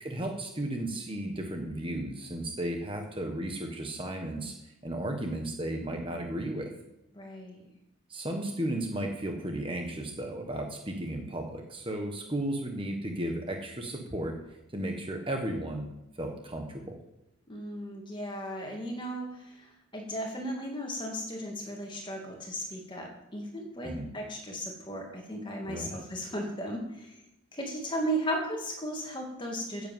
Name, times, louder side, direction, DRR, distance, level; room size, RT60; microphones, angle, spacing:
voice 1, 0.0-4.5 4.8-6.7 8.1-14.4 14.7-15.9 16.2-17.0 23.8-24.1 25.7-26.0, right 1 dB, 25° right, 3 dB, 1.4 m, -34 dB
voice 2, 7.1-7.7 17.5-27.2 27.5-29.9, right 1 dB, 20° left, 0 dB, 2.5 m, -36 dB
10.5 x 8.3 x 7.5 m, 0.83 s
head